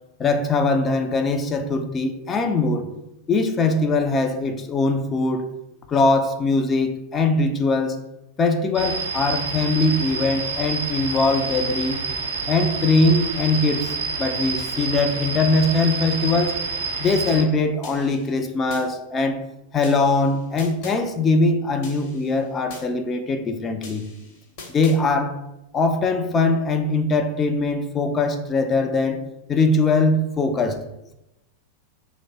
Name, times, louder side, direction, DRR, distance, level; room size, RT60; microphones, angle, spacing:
voice 1, 0.2-2.9 3.3-5.5 5.9-8.0 8.4-12.0 12.5-16.6 17.0-19.4 19.7-24.0 24.7-25.4 25.7-29.2 29.5-30.8, left 3 dB, 25° left, 6 dB, 0.4 m, -21 dB
sound 1, 8.8-17.4, right 4 dB, 65° right, 0.5 m, -28 dB
sound 2, 17.8-18.9 19.8-21.0 21.8-22.9 23.8-25.0, left 3 dB, 50° left, 0.9 m, -42 dB
3.1 x 2.1 x 4.0 m, 0.88 s
figure-of-eight pair, 90°, 0 cm